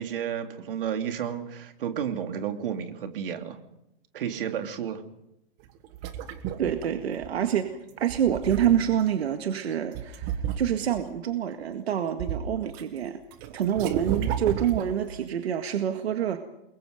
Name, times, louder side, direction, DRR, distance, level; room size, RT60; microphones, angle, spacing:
voice 1, 0.0-3.6 4.1-5.0, right 8 dB, 55° right, 5 dB, 2.9 m, -32 dB
sound 1, 5.7-7.5 8.0-9.1 9.9-11.1 11.6-12.8 13.1-15.2, right 9 dB, 25° right, 1.4 m, -33 dB
voice 2, 6.6-13.2 13.5-16.4, right 9 dB, 75° right, 6 dB, 2.0 m, -27 dB
29.5 x 22.0 x 5.2 m, 0.86 s
hypercardioid pair, 170°, 32 cm